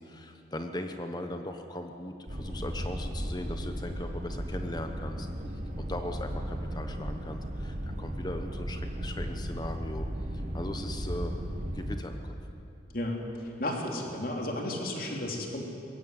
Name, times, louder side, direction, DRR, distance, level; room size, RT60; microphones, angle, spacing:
voice 1, 0.0-5.3 5.8-10.1 10.3-11.4 11.7-12.3, left 1 dB, 20° left, 6 dB, 1.0 m, -39 dB
sound 1, 2.3-12.0, equal, 40° right, 1.7 m, -35 dB
voice 2, 13.6-15.6, left 1 dB, 45° left, 1 dB, 3.2 m, -33 dB
21.5 x 16.0 x 9.6 m, 2.7 s
head